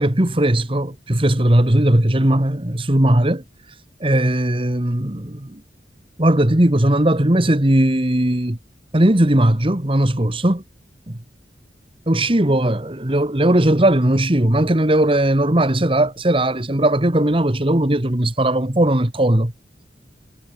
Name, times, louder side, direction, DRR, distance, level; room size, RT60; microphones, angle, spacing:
voice 1, 0.0-3.4 4.0-5.6 6.2-8.6 8.9-10.6 11.1-11.2 12.1-19.5, right 1 dB, 30° right, 1.8 m, -18 dB
head